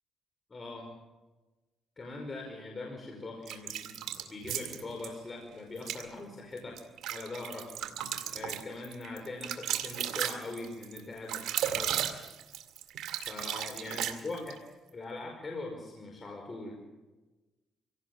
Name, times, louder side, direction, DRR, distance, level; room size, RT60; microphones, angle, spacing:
voice 1, 0.5-0.9 2.0-4.0 4.3-6.8 7.1-7.6 8.3-12.1 13.3-14.6 14.9-16.8, left 3 dB, 30° left, 1 dB, 5.1 m, -41 dB
sound 1, 3.5-5.1 5.8-6.0 6.6-14.6, right 10 dB, 80° right, 2.4 m, -35 dB
25.5 x 17.5 x 7.3 m, 1.1 s
cardioid pair, 90°, 0 cm